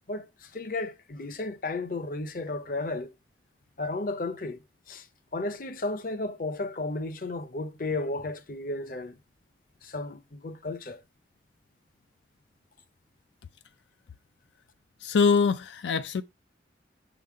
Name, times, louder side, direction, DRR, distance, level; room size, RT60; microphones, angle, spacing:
voice 1, 0.1-3.1 3.8-4.6 4.9-5.1 5.3-9.2 9.8-11.0, left 2 dB, 50° left, 0.7 m, -33 dB
voice 2, 15.0-16.2, left 5 dB, 85° left, 0.4 m, -23 dB
6.4 x 4.0 x 4.7 m
head